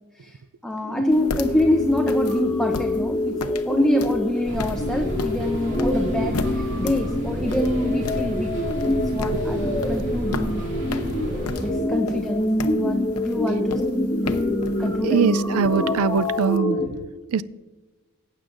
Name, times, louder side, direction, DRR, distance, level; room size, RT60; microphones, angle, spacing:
voice 1, 0.2-3.4 3.6-8.5 8.8-10.6 11.6-12.5 12.8-13.8 14.2-14.3 14.8-15.3, left 1 dB, 5° left, 2 dB, 0.7 m, -26 dB
sound 1, 0.8-16.9, left 1 dB, 20° left, 1.1 m, -26 dB
sound 2, 1.1-16.6, left 3 dB, 85° left, 0.7 m, -37 dB
sound 3, 4.4-11.7, equal, 55° right, 2.8 m, -31 dB
voice 2, 15.0-16.8 17.3-17.4, right 5 dB, 80° right, 18 dB, 0.4 m, -22 dB
18.0 x 8.8 x 2.5 m, 1.2 s
head